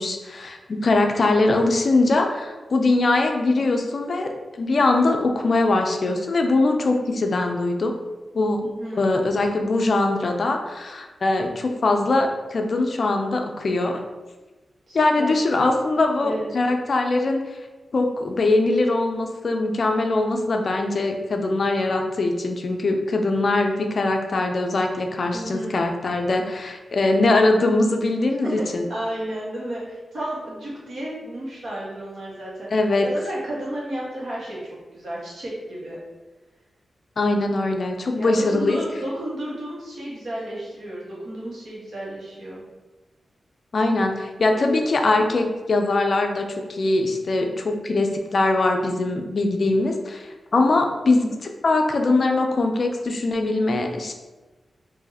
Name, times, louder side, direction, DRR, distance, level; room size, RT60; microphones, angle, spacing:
voice 1, 0.0-7.9 8.3-8.6 8.9-14.0 14.9-17.4 17.9-28.9 32.7-33.1 37.2-38.8 43.7-54.1, left 2 dB, 50° left, 4 dB, 0.4 m, -22 dB
voice 2, 8.6-9.0 14.9-15.3 16.2-16.5 25.3-25.7 28.4-28.6 28.9-32.7 33.0-34.6 34.9-36.0 38.2-42.6, right 1 dB, 65° right, -6 dB, 1.2 m, -32 dB
2.7 x 2.6 x 3.9 m, 1.2 s
wide cardioid pair, 145°, 0 cm